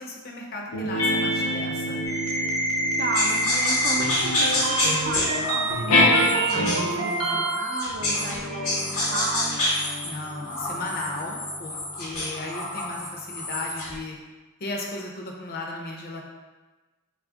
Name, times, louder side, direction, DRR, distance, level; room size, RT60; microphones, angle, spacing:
voice 1, 0.0-2.0 7.1-7.5 9.8-14.2 14.6-16.2, left 2 dB, 45° left, 0 dB, 0.6 m, -35 dB
sound 1, 0.7-7.1 7.9-12.8, left 1 dB, 85° left, 0.7 m, -28 dB
sound 2, 2.0-7.9, right 1 dB, 70° right, 0.7 m, -27 dB
voice 2, 3.0-9.8, right 4 dB, 45° right, 3 dB, 0.3 m, -34 dB
sound 3, 3.1-8.4 8.6-14.0, left 1 dB, 70° left, 1.0 m, -28 dB
3.2 x 2.4 x 3.6 m, 1.2 s
head